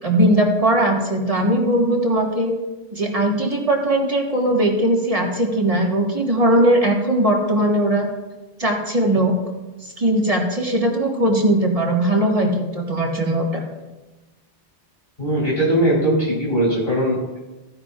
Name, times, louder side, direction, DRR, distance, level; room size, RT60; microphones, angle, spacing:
voice 1, 0.0-2.5 2.9-8.1 8.6-9.3 10.0-13.6, right 1 dB, 30° right, -1 dB, 1.8 m, -19 dB
voice 2, 15.2-17.4, right 1 dB, 55° left, -7 dB, 4.3 m, -20 dB
15.5 x 10.0 x 2.5 m, 1.1 s
omnidirectional pair, 1.1 m